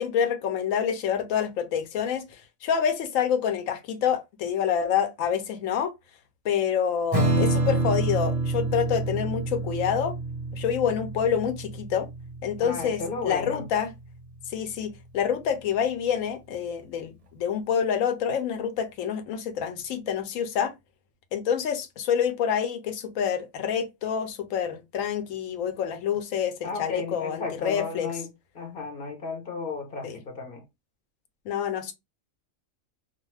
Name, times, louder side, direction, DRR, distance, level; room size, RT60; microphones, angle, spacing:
voice 1, 0.0-2.3 2.6-5.9 6.4-10.2 10.5-12.1 12.4-13.9 14.5-20.7 21.3-28.1 30.0-30.2 31.5-31.9, left 8 dB, 75° left, 1.0 m, -27 dB
Strum, 7.1-14.0, right 2 dB, 40° right, 0.5 m, -28 dB
voice 2, 12.6-13.7 26.6-30.6, left 4 dB, 50° left, 0.8 m, -34 dB
2.4 x 2.4 x 3.1 m
omnidirectional pair, 1.4 m